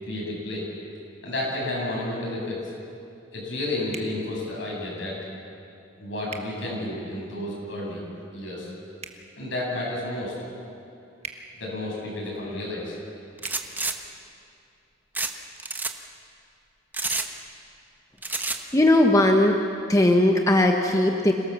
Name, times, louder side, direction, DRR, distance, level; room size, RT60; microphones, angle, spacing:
voice 1, 0.0-0.7 1.2-2.7 3.3-5.1 6.0-8.0 8.3-8.7 9.4-10.3 11.6-12.9, left 1 dB, 70° left, -4 dB, 8.0 m, -31 dB
sound 1, 3.9-4.1 6.3-6.5 9.0-9.2 11.2-11.4 13.4-13.6, right 5 dB, 35° right, 1.5 m, -39 dB
sound 2, 13.4-13.9 15.1-15.3 15.6-15.9 16.9-17.3 18.2-18.6, right 3 dB, 10° right, 1.1 m, -28 dB
voice 2, 18.7-19.6 19.9-21.3, left 1 dB, 15° left, 3 dB, 1.0 m, -18 dB
26.0 x 18.0 x 7.3 m, 2.6 s
head